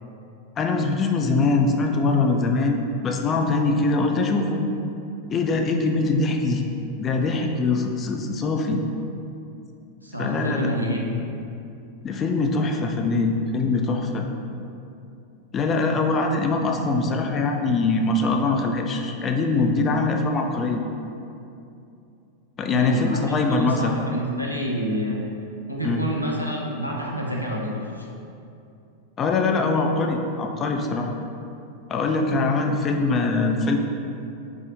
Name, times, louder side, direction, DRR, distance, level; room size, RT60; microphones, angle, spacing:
voice 1, 0.6-4.6 5.3-6.6 7.0-8.8 10.2-10.7 12.0-14.3 15.5-20.8 22.6-23.9 25.8-26.0 29.2-31.1 31.9-33.8, left 3 dB, 25° left, 3 dB, 0.3 m, -23 dB
voice 2, 10.0-11.1 22.7-25.3 25.7-28.1, equal, 90° right, -2 dB, 0.5 m, -28 dB
3.9 x 2.0 x 4.3 m, 2.6 s
figure-of-eight pair, 90°, 0 cm